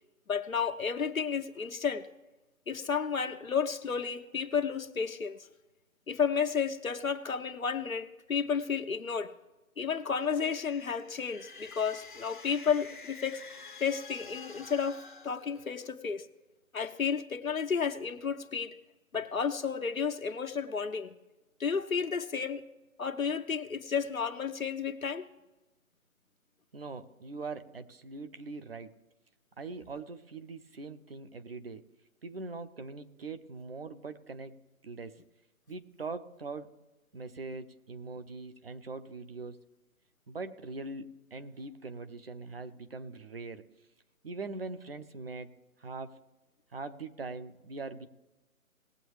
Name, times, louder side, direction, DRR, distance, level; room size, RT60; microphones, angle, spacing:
voice 1, 0.3-2.1 2.7-5.4 6.1-9.3 9.8-13.4 13.8-15.0 15.2-16.2 16.7-18.7 19.1-21.1 21.6-22.6 23.0-25.3, left 6 dB, 70° left, 6 dB, 1.0 m, -32 dB
sound 1, 10.0-16.1, left 4 dB, 35° left, 0.7 m, -49 dB
voice 2, 26.7-29.0 29.6-31.9 32.2-35.2 35.7-36.7 37.1-39.6 40.3-43.7 44.2-46.2 46.7-48.1, right 3 dB, 45° right, 9 dB, 0.8 m, -42 dB
19.5 x 7.8 x 3.2 m, 1.1 s
figure-of-eight pair, 150°, 42 cm